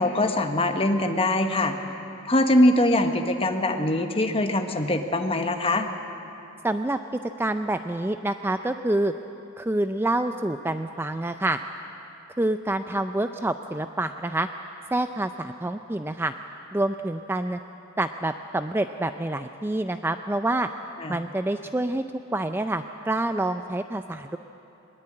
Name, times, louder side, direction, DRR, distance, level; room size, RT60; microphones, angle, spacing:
voice 1, 0.0-1.7 2.2-5.9 21.0-21.2, left 1 dB, 25° left, 5 dB, 1.4 m, -22 dB
voice 2, 6.6-7.0 7.4-9.1 9.6-11.6 12.4-14.5 14.9-16.3 16.7-17.6 18.0-20.7 21.1-22.0 22.3-24.4, right 1 dB, 10° right, 8 dB, 0.4 m, -27 dB
21.5 x 21.0 x 8.7 m, 3.0 s
head